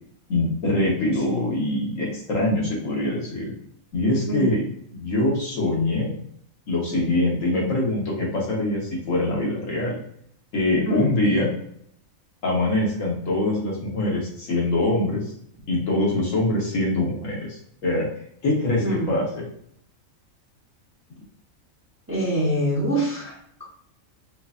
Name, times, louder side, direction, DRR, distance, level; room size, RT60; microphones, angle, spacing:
voice 1, 0.3-3.5 3.9-4.6 4.9-6.1 6.7-10.0 10.5-11.5 12.4-15.3 15.7-18.1 18.4-19.4, left 2 dB, 65° left, -3 dB, 1.5 m, -23 dB
voice 2, 4.3-4.6 10.8-11.1 18.8-19.1 22.1-23.6, right 1 dB, 15° right, -5 dB, 0.6 m, -25 dB
4.5 x 2.5 x 2.4 m, 0.67 s
omnidirectional pair, 1.5 m